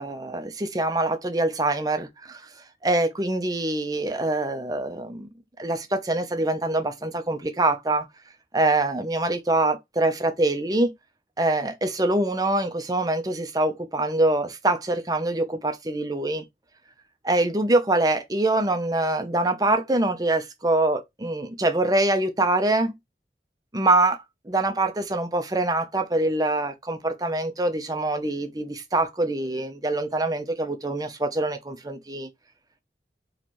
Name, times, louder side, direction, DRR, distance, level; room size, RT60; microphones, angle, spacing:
voice 1, 0.0-2.5 2.8-5.3 5.6-8.1 8.5-10.9 11.4-16.4 17.2-23.0 23.7-24.2 24.5-32.3, right 2 dB, 20° right, 0.7 m, -24 dB
4.4 x 3.2 x 3.0 m
head